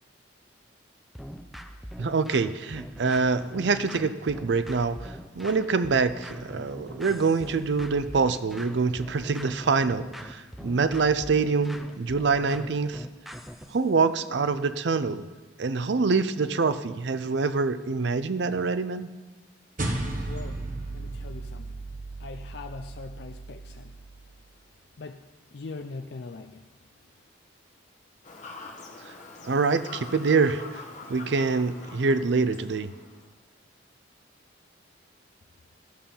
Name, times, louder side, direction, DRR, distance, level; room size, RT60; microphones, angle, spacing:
sound 1, 1.2-13.8, equal, ahead, 0.5 m, -42 dB
voice 1, 2.0-13.1 13.7-15.3 15.6-19.1 29.4-30.8 31.1-32.9, right 4 dB, 65° right, 13 dB, 0.5 m, -25 dB
sound 2, 19.8-24.4, right 2 dB, 45° right, 1.2 m, -35 dB
voice 2, 20.3-20.6 20.9-21.8 22.2-23.9 25.0-25.2 25.5-26.6, left 3 dB, 60° left, 6 dB, 0.5 m, -41 dB
Fowl / Bird vocalization bird call bird song, 28.2-33.2, left 3 dB, 40° left, 1.3 m, -44 dB
12.5 x 5.5 x 7.0 m, 1.3 s
head